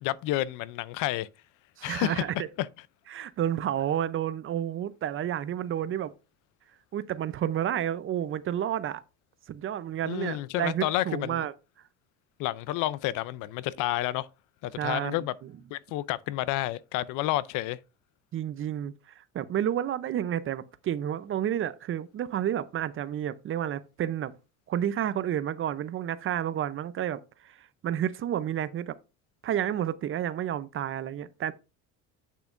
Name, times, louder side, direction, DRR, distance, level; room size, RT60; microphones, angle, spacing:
voice 1, 0.0-1.3 1.8-2.3 2.6-2.7 10.0-11.4 12.4-14.3 14.6-15.3 15.7-17.8, left 15 dB, 70° left, 0.5 m, -30 dB
voice 2, 1.8-2.5 3.1-6.1 6.9-9.0 9.5-11.5 14.8-15.3 18.3-24.3 24.7-29.0 29.4-31.5, right 10 dB, 40° right, 0.6 m, -30 dB
8.4 x 6.9 x 2.5 m
cardioid pair, 115°, 32 cm